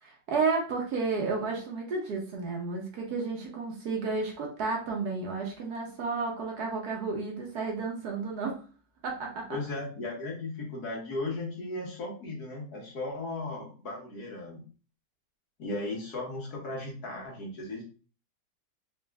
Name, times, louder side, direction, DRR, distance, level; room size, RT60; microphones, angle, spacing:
voice 1, 0.0-8.6 9.0-9.6, right 4 dB, 65° right, 0 dB, 1.2 m, -32 dB
voice 2, 9.5-14.6 15.6-17.8, left 2 dB, 65° left, -2 dB, 1.6 m, -36 dB
4.1 x 2.4 x 3.3 m, 0.38 s
omnidirectional pair, 1.9 m